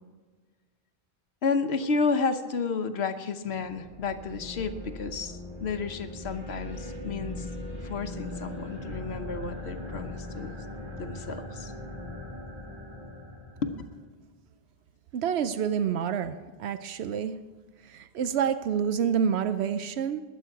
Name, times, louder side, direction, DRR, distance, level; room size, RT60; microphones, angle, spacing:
voice 1, 1.4-7.5 7.8-10.6 11.0-11.7 13.6-13.7, left 4 dB, 85° left, 8 dB, 1.2 m, -31 dB
sound 1, 3.4-14.0, left 1 dB, 50° right, 5.6 m, -40 dB
voice 2, 15.1-16.3 16.6-17.3 17.8-20.2, right 7 dB, 85° right, 11 dB, 0.9 m, -28 dB
20.5 x 8.4 x 4.6 m, 1.4 s
omnidirectional pair, 1.1 m